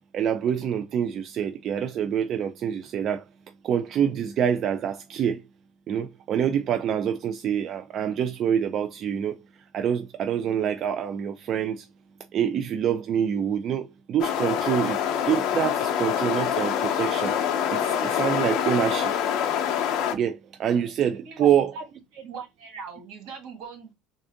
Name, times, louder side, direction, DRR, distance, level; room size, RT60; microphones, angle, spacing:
voice 1, 0.1-3.2 3.6-5.4 5.9-9.4 9.7-11.9 12.3-17.4 17.7-19.1 20.1-21.7, right 8 dB, 40° right, 0.3 m, -26 dB
sound 1, 14.2-20.1, left 9 dB, 55° left, 0.6 m, -25 dB
voice 2, 22.1-23.9, right 5 dB, 70° right, 2.1 m, -39 dB
3.6 x 2.6 x 3.4 m
cardioid pair, 165°, 0 cm